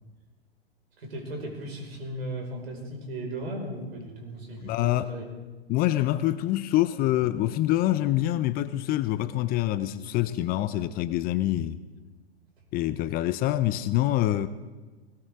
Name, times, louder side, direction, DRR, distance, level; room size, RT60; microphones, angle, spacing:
voice 1, 1.0-5.2, right 1 dB, 75° right, 1 dB, 5.4 m, -36 dB
voice 2, 4.6-5.1 5.7-11.8 12.7-14.5, left 14 dB, 30° left, 14 dB, 0.6 m, -25 dB
20.0 x 19.0 x 3.7 m, 1.3 s
hypercardioid pair, 105°, 31 cm